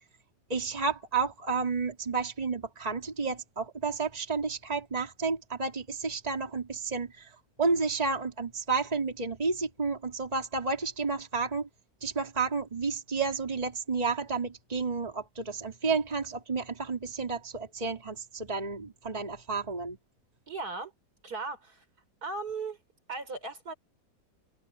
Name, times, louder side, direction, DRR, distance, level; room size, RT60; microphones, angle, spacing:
voice 1, 0.5-7.3 7.6-11.7 12.0-20.0, right 4 dB, 20° right, 2.7 m, -31 dB
voice 2, 20.5-20.9 21.2-21.8 22.2-22.8 23.1-23.7, right 3 dB, 55° right, 4.8 m, -37 dB
omnidirectional pair, 1.9 m